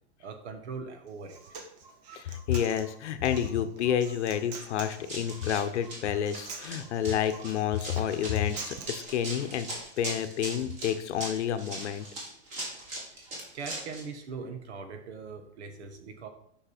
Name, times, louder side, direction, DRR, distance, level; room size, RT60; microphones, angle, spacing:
voice 1, 0.2-1.4 13.1-16.3, right 5 dB, 70° right, 6 dB, 1.5 m, -41 dB
Human voice, 1.1-9.1, right 5 dB, 35° right, 0.9 m, -45 dB
voice 2, 2.1-9.7 10.0-12.0, left 9 dB, 75° left, 10 dB, 0.9 m, -29 dB
Run, 4.8-14.0, right 1 dB, 20° right, 1.5 m, -40 dB
8.0 x 5.4 x 4.3 m, 0.70 s
supercardioid pair, 180°, 35 cm